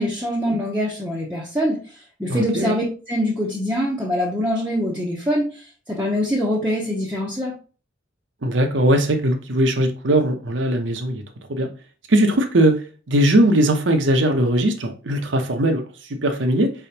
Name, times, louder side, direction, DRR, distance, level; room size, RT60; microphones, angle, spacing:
voice 1, 0.0-1.8 2.2-7.5, equal, 10° right, 0.8 m, -24 dB
voice 2, 2.3-2.8 8.4-11.2 11.5-11.7 12.1-12.8 13.1-15.8 16.1-16.7, right 1 dB, 75° right, 0.8 m, -19 dB
4.7 x 3.5 x 2.8 m
head